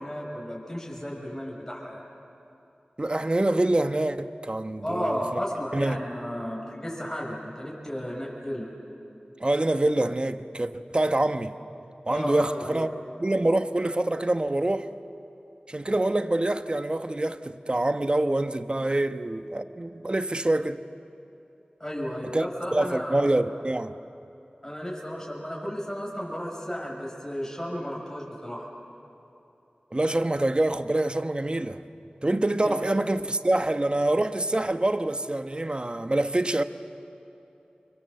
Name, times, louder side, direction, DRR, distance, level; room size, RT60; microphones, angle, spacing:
voice 1, 0.0-2.0 4.8-8.7 12.1-12.8 21.8-23.4 24.6-28.7 32.6-32.8, equal, 15° left, 6.8 m, -33 dB
voice 2, 3.0-5.2 5.7-6.0 9.4-11.5 12.1-12.9 13.2-14.9 15.7-20.8 22.3-22.4 22.7-23.9 29.9-31.8 32.2-36.6, right 1 dB, 35° right, 1.1 m, -25 dB
28.5 x 24.0 x 7.8 m
wide cardioid pair, 45°, 3 cm